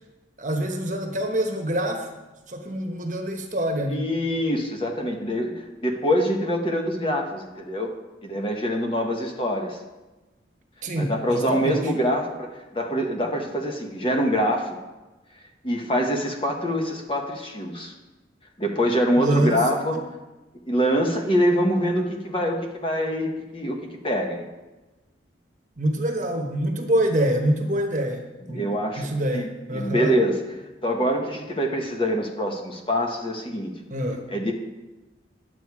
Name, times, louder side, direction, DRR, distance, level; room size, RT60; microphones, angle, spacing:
voice 1, 0.4-2.1 2.5-4.0 10.8-11.8 19.2-19.6 19.9-20.1 25.8-30.2 33.9-34.2, right 1 dB, 40° right, 3 dB, 1.2 m, -25 dB
voice 2, 3.9-7.9 8.2-9.8 11.0-14.8 15.6-17.9 18.6-20.0 20.7-24.5 28.5-30.4 30.8-33.7 34.3-34.5, equal, 30° left, 2 dB, 1.2 m, -25 dB
10.5 x 8.1 x 4.8 m, 1.1 s
head